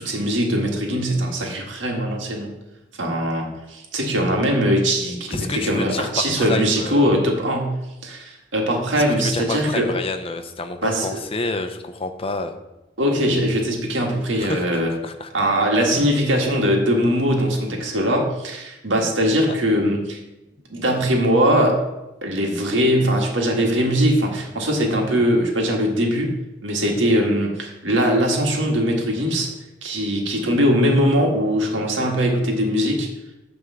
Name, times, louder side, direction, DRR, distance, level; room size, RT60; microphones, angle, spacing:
voice 1, 0.0-2.5 3.0-9.9 10.8-11.1 13.0-14.9 15.3-20.2 20.7-21.8 22.2-26.3 26.6-29.5 29.8-33.1, equal, 85° right, 0 dB, 1.7 m, -21 dB
voice 2, 5.3-7.1 9.0-12.6 14.3-15.3, left 3 dB, 30° left, 7 dB, 0.6 m, -29 dB
9.5 x 3.5 x 7.0 m, 0.97 s
head